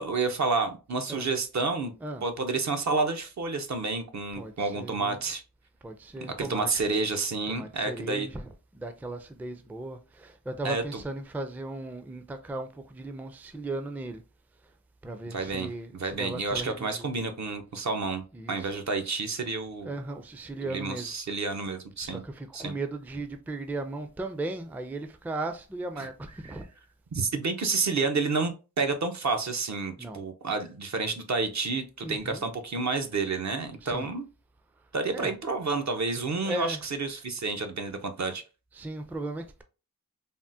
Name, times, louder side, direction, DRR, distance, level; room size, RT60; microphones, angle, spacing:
voice 1, 0.0-1.9 2.2-5.4 6.2-8.3 10.6-11.0 15.3-19.9 20.6-22.2 22.5-22.8 26.0-26.1 26.4-26.6 27.1-34.3 34.9-38.4, right 4 dB, 55° right, 0.6 m, -30 dB
voice 2, 4.3-5.2 5.8-6.9 7.5-14.2 15.0-17.1 18.3-18.7 19.8-21.1 22.0-26.7 30.0-30.2 32.0-32.5 33.8-34.1 35.1-35.4 36.4-36.8 38.7-39.6, right 2 dB, 5° right, 0.4 m, -37 dB
3.5 x 2.0 x 2.6 m
cardioid pair, 55°, 34 cm